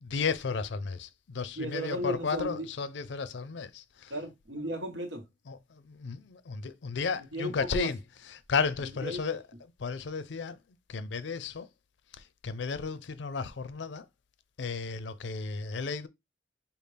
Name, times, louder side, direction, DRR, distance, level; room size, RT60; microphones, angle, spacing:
voice 1, 0.0-4.1 5.5-9.4 9.8-10.6 10.9-11.7 12.2-14.1 14.6-16.1, left 5 dB, 75° left, 0.5 m, -34 dB
voice 2, 1.6-2.7 4.1-5.2 7.2-7.9 9.0-9.2, equal, 85° right, 1.2 m, -35 dB
5.0 x 2.4 x 3.3 m
head